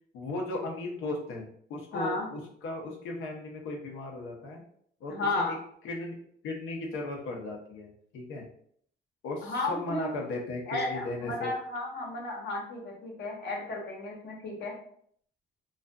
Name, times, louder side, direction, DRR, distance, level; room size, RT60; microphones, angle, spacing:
voice 1, 0.1-4.6 5.0-5.6 5.8-6.2 6.4-8.5 9.2-11.5, left 2 dB, 85° left, 1 dB, 0.7 m, -36 dB
voice 2, 1.9-2.3 5.1-5.6 9.4-10.1 10.7-14.8, left 2 dB, 60° left, 0 dB, 0.9 m, -33 dB
2.5 x 2.4 x 2.2 m, 0.64 s
cardioid pair, 90°, 20 cm